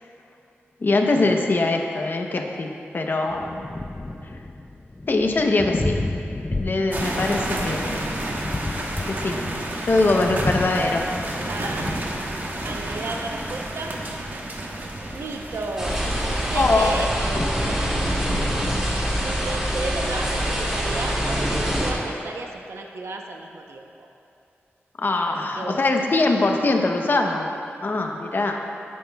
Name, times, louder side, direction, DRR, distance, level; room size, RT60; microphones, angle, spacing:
voice 1, 0.8-3.7 5.1-6.0 6.5-8.1 9.1-9.4 9.9-11.0 16.5-16.9 25.0-27.5 27.8-28.6, left 2 dB, 50° left, 2 dB, 0.8 m, -22 dB
Thunder, 3.3-18.6, left 2 dB, 20° left, 0.4 m, -33 dB
sound 1, 6.9-17.0, right 1 dB, 45° right, 1.1 m, -31 dB
voice 2, 10.1-10.5 11.2-12.0 12.6-14.0 15.1-16.0 16.3-17.9 18.3-18.7 18.9-24.1 25.3-25.9, right 3 dB, 75° right, 2 dB, 0.8 m, -34 dB
sound 2, 15.8-21.9, equal, 15° right, 2.2 m, -25 dB
14.0 x 9.4 x 2.3 m, 2.5 s
wide cardioid pair, 95°, 5 cm